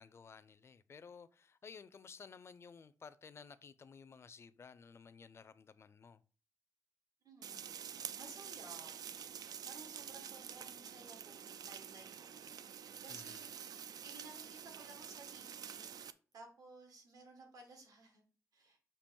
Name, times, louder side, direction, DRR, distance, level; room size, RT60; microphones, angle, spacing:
voice 1, 0.0-6.2 13.1-13.5, left 5 dB, 45° left, 0.4 m, -55 dB
voice 2, 7.2-7.7 8.1-9.0 9.7-15.9 16.3-18.2 18.5-18.8, right 3 dB, 75° right, 1.6 m, -57 dB
sound 1, 7.4-16.1, right 8 dB, 90° right, 0.4 m, -48 dB
6.8 x 2.9 x 5.2 m
wide cardioid pair, 160°, 6 cm